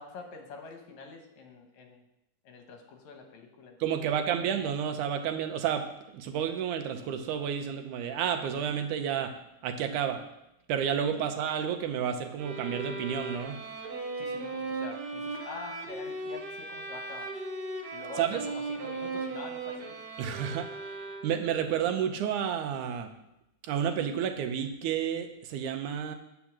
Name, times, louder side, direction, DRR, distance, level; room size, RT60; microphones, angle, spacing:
voice 1, 0.0-2.0 2.5-3.8 4.3-4.4 14.2-17.3 17.9-20.0, left 4 dB, 75° left, 4 dB, 2.4 m, -46 dB
voice 2, 3.8-5.8 6.1-9.3 9.6-10.2 10.7-13.6 18.2-18.4 20.2-20.7 21.2-23.1 23.6-26.2, right 8 dB, 90° right, 6 dB, 2.3 m, -30 dB
sound 1, 12.4-21.6, right 3 dB, 60° right, 1.0 m, -37 dB
8.1 x 5.0 x 7.3 m, 0.87 s
omnidirectional pair, 3.4 m